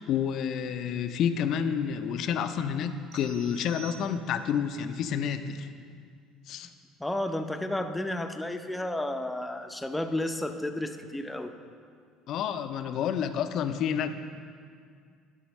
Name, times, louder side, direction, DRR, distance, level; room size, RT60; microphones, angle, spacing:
voice 1, 0.0-5.7 6.5-6.7 12.3-14.1, left 8 dB, 60° left, 9 dB, 0.5 m, -29 dB
sound 1, 3.1-4.6, right 10 dB, 65° right, 0.4 m, -50 dB
voice 2, 7.0-11.5, left 1 dB, 10° left, 6 dB, 0.6 m, -32 dB
11.0 x 4.2 x 5.3 m, 2.2 s
hypercardioid pair, 70°, 0 cm